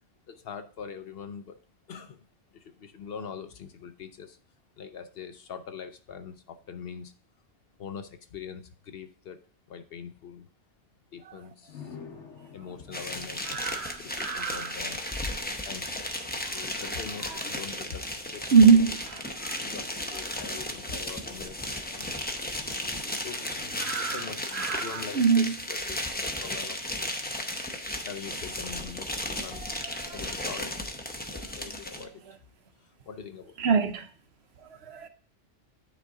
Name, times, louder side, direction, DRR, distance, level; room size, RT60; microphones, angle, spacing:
voice 1, 0.3-1.6 1.9-4.4 4.8-7.1 7.8-9.4 9.7-10.5 11.1-12.0 12.5-15.0 15.6-16.1 16.4-18.8 19.6-22.1 23.1-23.5 24.0-26.8 28.0-29.7 30.1-30.8 31.3-32.2 32.8-33.6, left 6 dB, 60° left, 0.8 m, -43 dB
sound 1, 11.7-25.5, left 5 dB, 80° left, 1.4 m, -52 dB
sound 2, 12.9-32.0, left 1 dB, 10° left, 0.5 m, -35 dB
voice 2, 13.5-14.7 16.5-16.6 17.3-17.4 18.5-19.8 23.8-24.3 24.5-25.5 29.5-30.2 31.4-31.5 33.6-34.1 34.6-35.1, right 5 dB, 65° right, 1.0 m, -24 dB
9.2 x 4.1 x 3.6 m
omnidirectional pair, 1.2 m